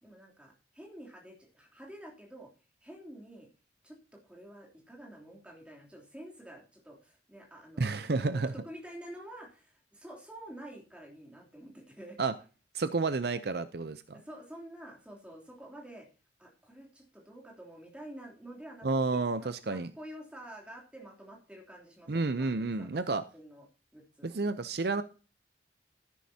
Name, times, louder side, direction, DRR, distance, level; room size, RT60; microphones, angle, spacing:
voice 1, 0.0-2.5 2.8-3.5 3.8-12.2 14.1-16.1 16.4-18.9 19.4-23.0 23.3-23.7 23.9-24.3, right 1 dB, 5° right, -1 dB, 3.1 m, -49 dB
voice 2, 7.8-8.5 12.2-12.3 12.7-14.2 18.8-19.9 22.1-23.2 24.2-25.0, right 3 dB, 55° right, 12 dB, 0.6 m, -30 dB
12.5 x 11.0 x 2.8 m, 0.35 s
head